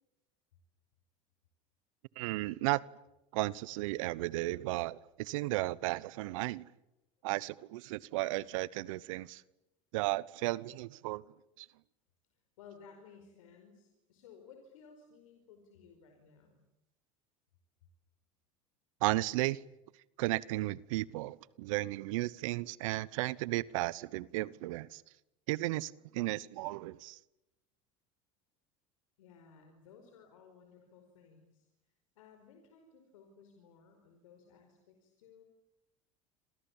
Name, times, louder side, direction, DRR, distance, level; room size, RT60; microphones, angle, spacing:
voice 1, 2.2-2.8 3.3-6.7 7.2-9.4 9.9-11.2 11.6-11.7 19.0-19.6 20.2-25.0 25.5-27.2, right 19 dB, 75° right, 1.0 m, -34 dB
voice 2, 12.6-16.6 29.2-31.7 32.1-35.4, left 6 dB, 80° left, 4.9 m, -58 dB
29.0 x 27.0 x 7.4 m
hypercardioid pair, 85°, 17 cm